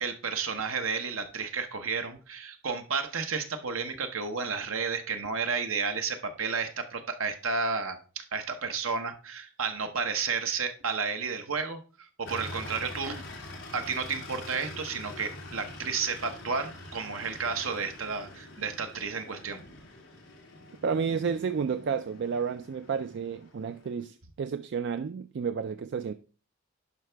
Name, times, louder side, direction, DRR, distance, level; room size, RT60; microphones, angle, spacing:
voice 1, 0.0-13.2 13.7-19.6, right 5 dB, 70° right, 1.0 m, -32 dB
sound 1, 12.2-24.0, left 2 dB, 55° left, 2.1 m, -45 dB
voice 2, 20.8-26.1, right 6 dB, 55° right, 0.3 m, -31 dB
11.0 x 4.9 x 3.4 m
head